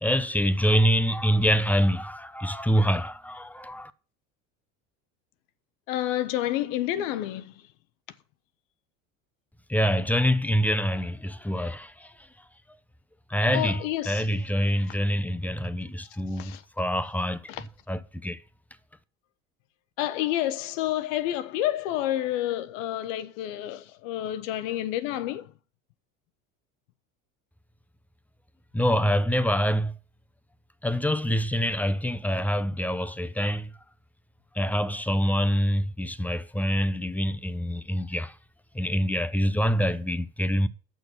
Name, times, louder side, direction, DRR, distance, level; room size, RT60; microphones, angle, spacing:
voice 1, 0.0-3.9 9.7-12.3 13.3-17.5 17.9-18.4 28.7-29.9 30.8-33.7 34.5-38.3 38.7-40.7, equal, 5° left, 0.8 m, -25 dB
voice 2, 5.9-7.5 13.5-14.3 16.3-16.6 17.5-17.6 20.0-25.5, left 13 dB, 70° left, 0.8 m, -29 dB
9.1 x 6.3 x 7.8 m
hypercardioid pair, 75°, 40 cm